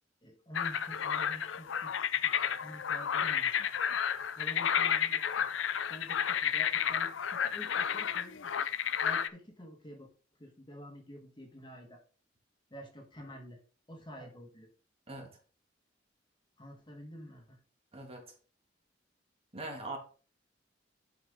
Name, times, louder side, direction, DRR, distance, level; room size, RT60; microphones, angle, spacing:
voice 1, 0.2-1.9 2.2-3.8 4.3-5.5 5.9-8.5 9.0-10.1 10.4-12.0 12.7-13.6 13.9-14.7 16.6-17.6, equal, 25° left, 2 dB, 1.6 m, -49 dB
sound 1, 0.5-9.3, left 8 dB, 85° left, 0.5 m, -31 dB
voice 2, 17.9-18.2 19.5-20.0, right 2 dB, 30° right, 1 dB, 2.0 m, -41 dB
11.5 x 4.7 x 3.6 m, 0.39 s
head